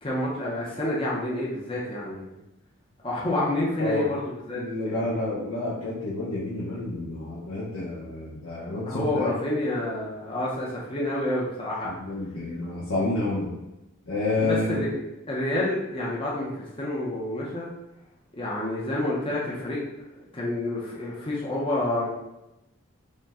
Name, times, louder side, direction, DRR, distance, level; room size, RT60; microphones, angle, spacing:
voice 1, 0.0-2.4 3.0-5.1 8.9-11.9 14.4-15.0 15.3-17.7 18.3-19.8 20.1-22.1, left 1 dB, 25° left, -5 dB, 0.7 m, -28 dB
voice 2, 4.5-9.3 11.8-13.6 14.1-14.8, left 2 dB, 80° left, -8 dB, 0.9 m, -29 dB
5.3 x 2.2 x 3.6 m, 0.93 s
head